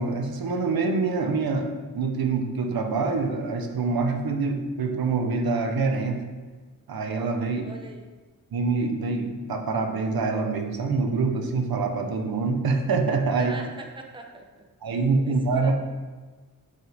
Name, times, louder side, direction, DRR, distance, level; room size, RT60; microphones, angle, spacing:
voice 1, 0.0-6.2 6.9-7.7 8.5-13.5 14.8-15.7, right 4 dB, 80° right, 4 dB, 0.8 m, -25 dB
voice 2, 7.6-8.1 13.4-14.4 15.2-15.7, right 3 dB, 15° right, 2 dB, 0.6 m, -41 dB
7.8 x 5.3 x 3.4 m, 1.4 s
wide cardioid pair, 160°, 35 cm